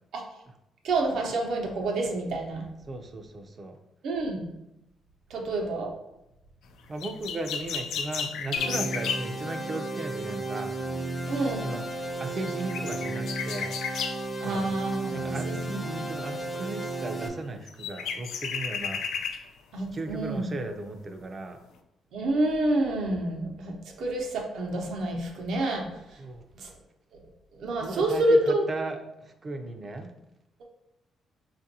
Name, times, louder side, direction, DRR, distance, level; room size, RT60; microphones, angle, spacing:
voice 1, 0.8-2.6 4.0-4.5 5.3-5.9 11.3-11.7 14.4-16.0 19.7-20.5 22.1-26.2 26.6-26.7 27.6-28.7, right 2 dB, 75° right, 1 dB, 0.8 m, -28 dB
voice 2, 2.9-3.8 6.9-10.7 11.6-11.9 12.2-13.7 14.4-14.7 15.1-19.0 19.9-21.6 26.2-26.4 27.8-30.1, right 2 dB, 35° right, 6 dB, 0.5 m, -36 dB
sound 1, 7.0-9.3 12.1-12.2 12.4-14.2 17.2-17.3 17.7-19.5 20.0-20.1, left 6 dB, 80° left, 0.3 m, -33 dB
sound 2, 8.6-17.3, right 2 dB, 20° left, 0.6 m, -34 dB
5.1 x 2.5 x 2.8 m, 0.89 s
cardioid pair, 90°, 0 cm